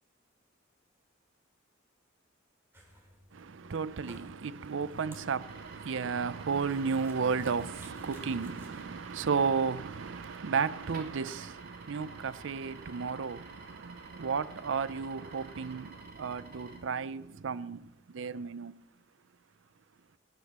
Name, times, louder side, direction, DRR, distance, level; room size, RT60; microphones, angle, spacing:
sound 1, 2.7-9.2, equal, 10° right, 3.7 m, -54 dB
voice 1, 3.3-18.7, right 5 dB, 70° right, 0.5 m, -33 dB
sound 2, 5.4-16.8, right 2 dB, 50° right, 3.4 m, -51 dB
16.5 x 9.2 x 7.3 m
head